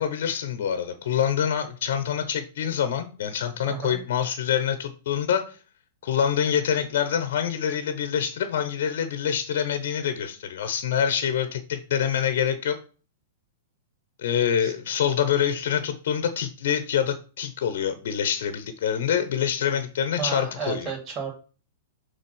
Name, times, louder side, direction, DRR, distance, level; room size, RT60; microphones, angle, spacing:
voice 1, 0.0-5.6 6.0-12.8 14.2-20.9, left 8 dB, 60° left, 10 dB, 1.0 m, -26 dB
voice 2, 3.7-4.0 14.6-14.7 20.2-21.3, right 6 dB, 35° right, 2 dB, 2.9 m, -32 dB
6.6 x 3.9 x 5.6 m, 0.36 s
hypercardioid pair, 105°, 0 cm